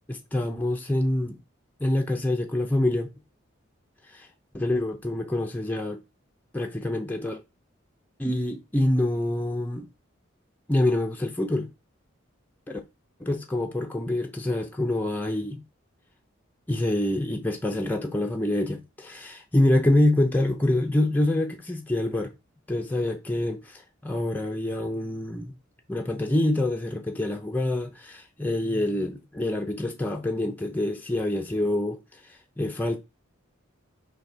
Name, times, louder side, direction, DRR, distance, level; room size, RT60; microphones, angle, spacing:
voice 1, 0.1-1.4 1.8-3.1 4.1-4.3 4.5-6.0 6.5-7.4 8.2-9.9 10.7-11.7 12.7-12.8 13.2-15.6 16.7-22.3 22.7-25.5 25.9-33.0, left 1 dB, 10° left, 0.4 m, -26 dB
4.1 x 2.8 x 4.5 m
head